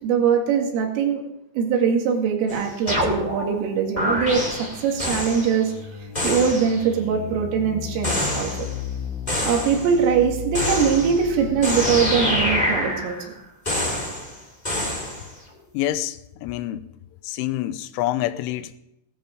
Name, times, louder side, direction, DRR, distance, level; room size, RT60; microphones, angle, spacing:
voice 1, 0.0-1.2 1.6-4.5 4.8-5.7 6.2-8.7 9.4-13.2, right 6 dB, 85° right, 4.7 m, -22 dB
sound 1, 2.5-3.6 4.0-5.6 6.2-6.9 8.0-8.8 9.3-10.0 10.5-11.3 11.6-13.3 13.7-14.4 14.6-15.3, left 1 dB, 15° left, 1.8 m, -26 dB
sound 2, 3.7-12.4, left 7 dB, 65° left, 5.2 m, -36 dB
voice 2, 15.7-16.9 17.2-18.8, left 13 dB, 80° left, 3.1 m, -27 dB
18.0 x 12.5 x 5.1 m
omnidirectional pair, 5.7 m